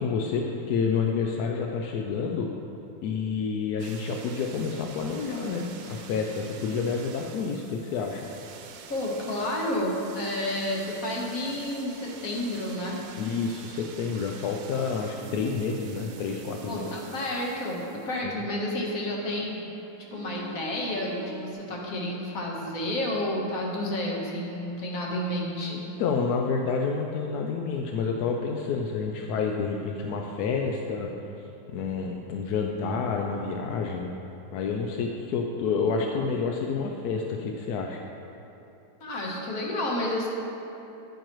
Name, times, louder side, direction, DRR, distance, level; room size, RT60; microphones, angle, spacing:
voice 1, 0.0-2.5 3.0-8.3 13.2-16.9 18.2-18.4 25.7-31.1 31.7-34.1 34.5-38.0, left 5 dB, 70° left, 1 dB, 0.9 m, -29 dB
sound 1, 3.8-18.6 19.3-21.5, right 7 dB, 75° right, 1.3 m, -46 dB
voice 2, 8.9-13.0 16.7-19.6 20.1-25.9 39.0-40.3, left 1 dB, 50° left, -2 dB, 1.5 m, -30 dB
10.5 x 8.7 x 3.0 m, 2.9 s
omnidirectional pair, 2.1 m